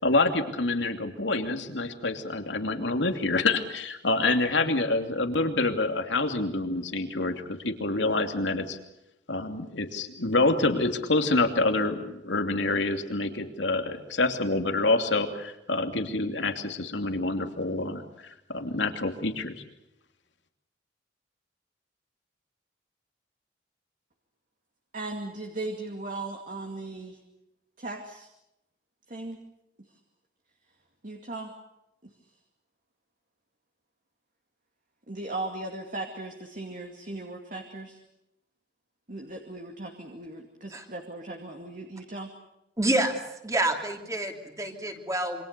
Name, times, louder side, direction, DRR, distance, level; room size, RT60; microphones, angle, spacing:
voice 1, 0.0-8.8 9.3-18.0 18.5-19.5, left 2 dB, 90° left, 6 dB, 2.8 m, -27 dB
voice 2, 24.9-27.2 27.8-28.3 29.1-29.4 31.0-31.5 32.0-32.1 35.1-38.0 39.1-42.3, right 2 dB, 45° right, 3 dB, 2.4 m, -37 dB
voice 3, 42.8-45.4, right 1 dB, 20° right, 4 dB, 3.0 m, -28 dB
27.5 x 24.5 x 6.8 m, 0.87 s
head